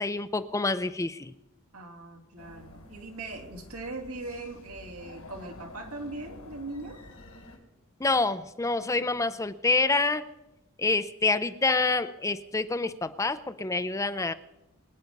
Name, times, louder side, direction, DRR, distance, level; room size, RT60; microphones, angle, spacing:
voice 1, 0.0-1.3 8.0-10.3 10.8-14.3, left 3 dB, 15° left, 12 dB, 0.5 m, -27 dB
voice 2, 1.7-7.0, right 2 dB, 85° right, 2 dB, 2.9 m, -40 dB
sound 1, 2.4-7.6, left 1 dB, 85° left, 3.9 m, -49 dB
23.0 x 9.5 x 5.3 m, 0.93 s
head